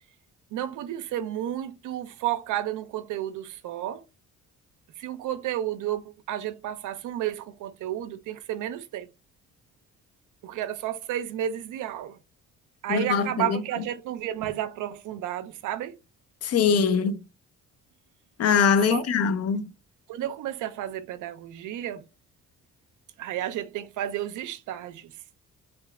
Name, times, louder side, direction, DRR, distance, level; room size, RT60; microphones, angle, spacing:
voice 1, 0.5-4.0 5.0-9.1 10.4-12.2 12.8-16.0 18.9-19.1 20.1-22.0 23.2-25.1, right 12 dB, 80° right, 0.5 m, -32 dB
voice 2, 12.9-13.6 16.4-17.2 18.4-19.6, left 6 dB, 55° left, 0.5 m, -22 dB
3.8 x 2.2 x 3.4 m
cardioid pair, 90°, 30 cm